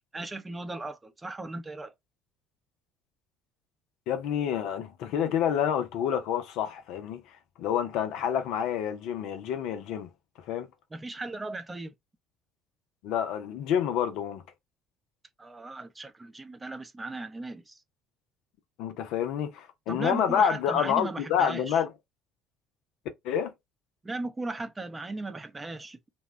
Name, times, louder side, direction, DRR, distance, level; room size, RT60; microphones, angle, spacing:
voice 1, 0.1-1.9 10.9-11.9 15.4-17.8 19.9-21.8 24.0-26.0, right 2 dB, 20° right, 0.6 m, -37 dB
voice 2, 4.1-7.2 7.6-10.1 10.5-10.7 13.0-14.4 18.8-21.9 23.2-23.5, left 8 dB, 60° left, 0.5 m, -28 dB
2.8 x 2.2 x 3.3 m
figure-of-eight pair, 55°, 0 cm